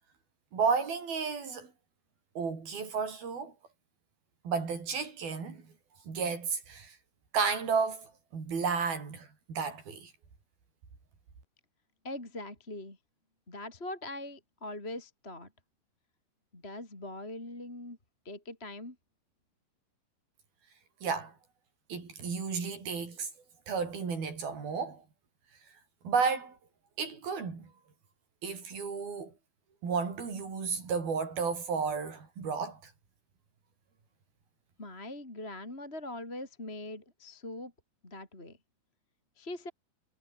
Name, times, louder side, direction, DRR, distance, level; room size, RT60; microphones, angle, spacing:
voice 1, 0.5-1.7 2.4-3.5 4.4-5.7 6.1-7.0 7.3-10.1 21.0-21.3 21.9-23.3 23.7-25.0 26.0-26.6 27.0-27.7 28.4-29.3 29.8-32.8, right 5 dB, 55° right, 7.7 m, -32 dB
voice 2, 12.0-13.0 13.5-15.5 16.5-18.0 18.2-19.0 34.8-37.7 38.0-38.6 39.4-39.7, left 1 dB, 15° left, 4.3 m, -42 dB
omnidirectional pair, 5.1 m